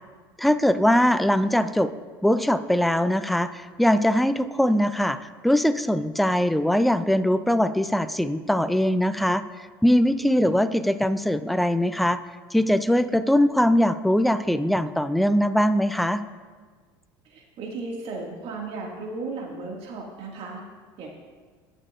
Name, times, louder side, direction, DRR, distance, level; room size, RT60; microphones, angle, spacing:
voice 1, 0.4-1.9 2.2-9.4 9.8-12.2 12.5-16.2, equal, ahead, 12 dB, 0.4 m, -21 dB
voice 2, 17.3-20.6 21.0-21.2, right 3 dB, 55° right, -1 dB, 2.1 m, -35 dB
17.5 x 6.5 x 2.5 m, 1.5 s
hypercardioid pair, 85°, 12 cm